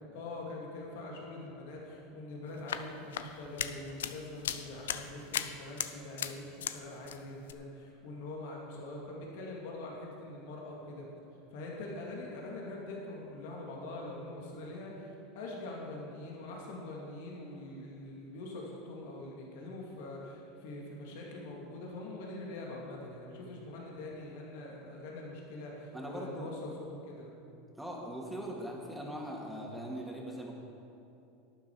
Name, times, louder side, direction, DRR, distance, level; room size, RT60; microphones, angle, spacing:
voice 1, 0.1-11.1 11.5-26.7 27.1-27.3, left 2 dB, 70° left, -2 dB, 2.4 m, -43 dB
sound 1, 2.5-6.8 7.0-7.5, left 9 dB, 85° left, 0.5 m, -38 dB
voice 2, 25.9-26.5 27.8-30.5, equal, 5° right, -2 dB, 2.3 m, -40 dB
12.5 x 9.6 x 4.7 m, 2.8 s
hypercardioid pair, 100°, 0 cm